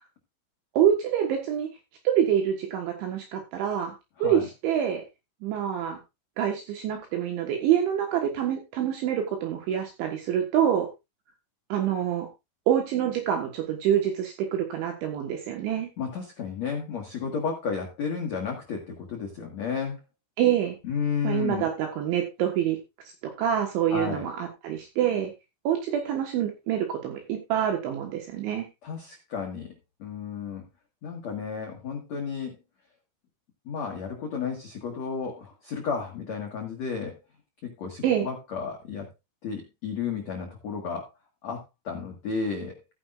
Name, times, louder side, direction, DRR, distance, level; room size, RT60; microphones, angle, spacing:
voice 1, 0.8-1.7 2.1-4.0 4.2-5.0 5.4-6.0 6.4-10.9 11.7-12.3 12.7-15.9 20.4-20.8 21.2-22.8 23.2-25.3 25.7-28.7 38.0-38.3, right 9 dB, 70° right, 3 dB, 3.5 m, -26 dB
voice 2, 16.0-20.0 20.8-21.7 23.9-24.3 28.8-29.7 30.0-30.6 31.0-32.6 33.6-37.2 37.6-39.1 39.4-41.1 41.4-42.7, left 5 dB, 85° left, 1 dB, 1.5 m, -32 dB
14.5 x 9.8 x 2.5 m, 0.23 s
omnidirectional pair, 5.9 m